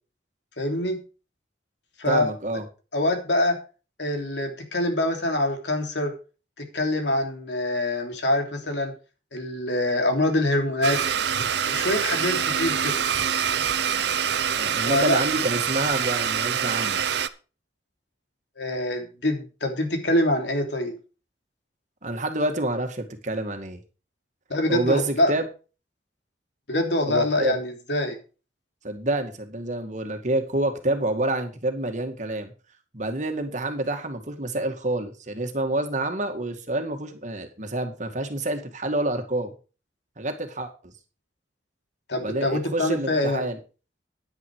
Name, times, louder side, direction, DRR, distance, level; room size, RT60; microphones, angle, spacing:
voice 1, 0.6-1.0 2.0-2.3 2.9-3.6 4.0-6.1 6.6-8.9 9.3-11.0 11.6-13.0 14.9-15.2 18.6-21.0 24.5-25.3 26.7-28.2 42.1-43.4, left 1 dB, 85° left, 4 dB, 3.0 m, -25 dB
voice 2, 2.1-2.6 14.6-17.0 22.0-23.8 24.7-25.5 27.1-27.6 28.8-32.5 32.9-39.5 40.2-40.9 42.2-43.6, right 2 dB, 45° right, 6 dB, 2.0 m, -28 dB
Domestic sounds home sounds, 10.8-17.3, right 8 dB, 75° right, 0.7 m, -25 dB
10.0 x 9.8 x 4.6 m, 0.34 s
head